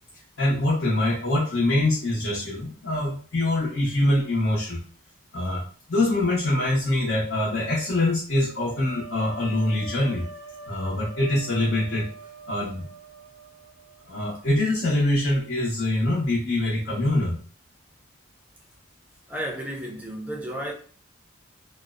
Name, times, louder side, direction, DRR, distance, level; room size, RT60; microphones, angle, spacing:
voice 1, 0.4-4.8 5.3-5.6 5.9-10.2 10.7-12.1 12.5-12.9 14.1-17.4, left 1 dB, 55° left, 0.7 m, -24 dB
sound 1, 8.6-14.5, right 3 dB, 75° left, 1.1 m, -44 dB
voice 2, 19.3-20.7, right 1 dB, 5° right, 0.4 m, -32 dB
2.7 x 2.0 x 2.3 m
head